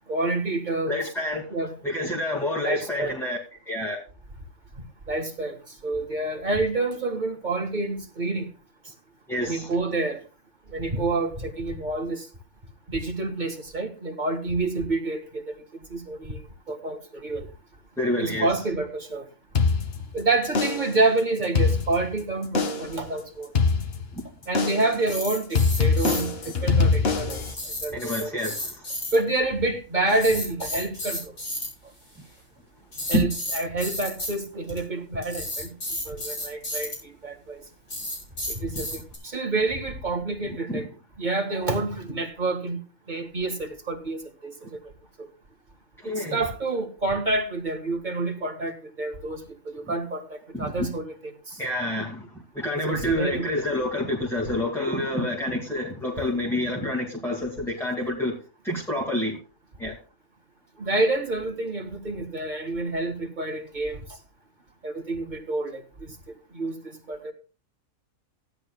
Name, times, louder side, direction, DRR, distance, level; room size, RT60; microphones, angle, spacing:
voice 1, 0.1-0.9 1.5-1.8 2.6-3.1 5.1-5.6 5.8-8.5 9.4-10.2 10.7-12.3 12.9-15.6 15.9-16.4 16.7-17.5 18.2-19.2 20.1-23.5 24.5-27.4 27.8-28.6 29.1-31.3 33.1-35.7 36.1-37.6 38.5-40.9 41.2-42.8 43.1-44.8 45.2-45.3 46.0-51.6 52.9-53.4 60.8-64.0 64.8-66.1 66.5-66.8 67.1-67.3, right 2 dB, 35° right, 1.8 m, -28 dB
voice 2, 0.9-1.5 1.8-3.4 3.7-4.0 9.3-9.7 18.0-18.6 24.1-24.2 27.9-28.9 40.4-40.8 46.0-46.4 50.5-50.9 51.6-58.4 58.6-59.4 59.8-60.0, left 1 dB, ahead, 2.2 m, -28 dB
sound 1, 19.5-20.2 20.5-21.0 21.4-22.2 22.5-23.0 23.5-24.2 24.5-25.0 25.5-27.5, left 4 dB, 50° left, 1.4 m, -23 dB
sound 2, 25.0-26.2 27.5-29.2 30.1-31.7 32.9-34.3 34.7-34.8 35.2-36.9 37.9-39.2, left 1 dB, 80° left, 5.9 m, -31 dB
16.0 x 11.0 x 2.3 m
omnidirectional pair, 1.4 m